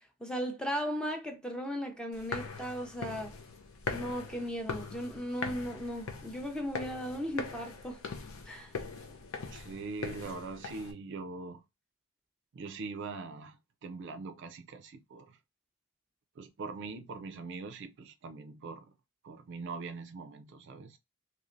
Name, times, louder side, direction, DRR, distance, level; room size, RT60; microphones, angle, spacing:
voice 1, 0.0-3.4 3.9-8.0 8.5-8.7, equal, 5° left, 0.5 m, -36 dB
sound 1, 2.1-10.9, left 4 dB, 70° left, 0.7 m, -41 dB
voice 2, 9.5-11.6 12.5-15.4 16.4-18.9 19.2-21.0, right 4 dB, 55° right, 0.4 m, -42 dB
3.1 x 2.8 x 2.6 m
head